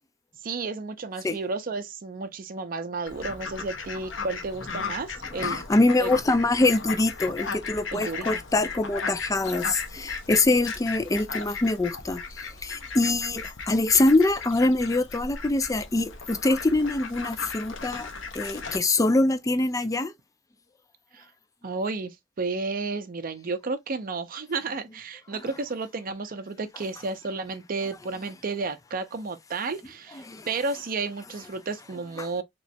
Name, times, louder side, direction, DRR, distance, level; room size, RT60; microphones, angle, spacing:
voice 1, 0.4-5.7 6.0-6.1 7.9-8.3 21.1-21.3 21.6-32.4, right 3 dB, 50° right, 0.5 m, -32 dB
Fowl, 3.1-18.8, left 4 dB, 80° left, 0.8 m, -36 dB
voice 2, 5.3-12.2 12.6-18.1 18.3-20.1 30.3-30.5 32.2-32.3, left 2 dB, 20° left, 0.4 m, -24 dB
3.2 x 3.0 x 2.7 m
head